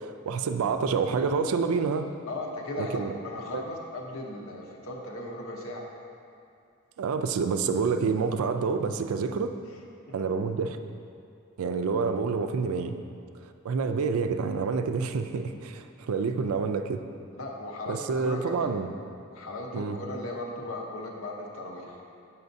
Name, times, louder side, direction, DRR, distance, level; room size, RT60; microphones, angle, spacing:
voice 1, 0.0-2.1 2.8-3.1 3.5-3.6 7.0-9.5 10.1-10.8 11.6-13.0 13.6-17.0 17.9-18.9 19.7-20.0, right 5 dB, 80° right, 8 dB, 0.4 m, -28 dB
voice 2, 2.3-5.9 17.3-18.7 19.3-21.9, left 1 dB, 70° left, 0 dB, 0.8 m, -37 dB
7.9 x 5.7 x 2.6 m, 2.4 s
head